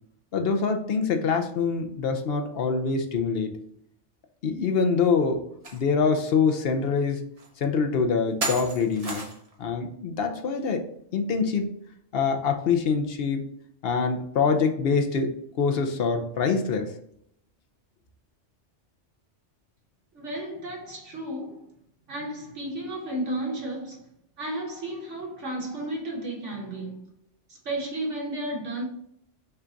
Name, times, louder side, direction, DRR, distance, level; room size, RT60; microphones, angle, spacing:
voice 1, 0.3-3.5 4.4-5.4 5.7-7.2 7.6-9.2 9.6-10.8 11.1-11.6 12.1-13.4 13.8-15.3 15.6-16.9, left 5 dB, 60° left, 0.8 m, -24 dB
sound 1, 5.6-5.8 6.3-6.4 7.4-7.5 8.4-9.5, right 2 dB, 35° right, 0.9 m, -32 dB
voice 2, 20.1-21.7 22.1-24.1 24.4-27.0 27.5-28.8, right 1 dB, 75° right, 1.8 m, -33 dB
5.6 x 2.4 x 3.9 m
omnidirectional pair, 1.2 m